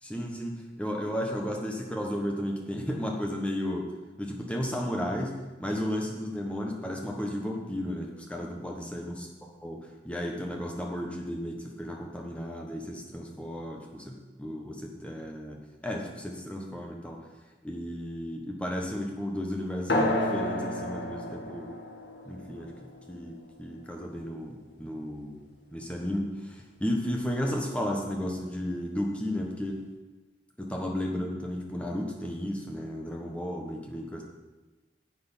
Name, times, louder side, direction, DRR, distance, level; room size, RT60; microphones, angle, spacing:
voice 1, 0.0-3.9 4.2-9.3 9.6-9.8 10.0-15.6 15.8-17.3 17.6-21.7 22.2-25.4 25.7-29.8 30.6-34.2, equal, 5° left, 0 dB, 1.3 m, -34 dB
sound 1, 19.9-24.9, left 1 dB, 85° left, 1.7 m, -32 dB
10.5 x 7.8 x 5.7 m, 1.2 s
head